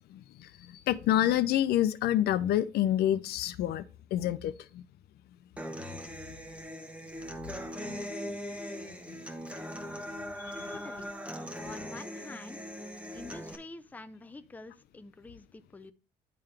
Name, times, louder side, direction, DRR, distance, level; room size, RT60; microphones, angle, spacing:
voice 1, 0.1-4.8 7.8-8.4 9.1-9.2 10.4-10.7, left 12 dB, 70° left, 0.5 m, -29 dB
Human voice / Acoustic guitar, 5.6-13.6, equal, 5° right, 1.1 m, -40 dB
voice 2, 10.7-11.1 11.6-12.6 13.1-15.9, left 3 dB, 10° left, 0.5 m, -47 dB
10.5 x 3.7 x 3.3 m
cardioid pair, 110°, 17 cm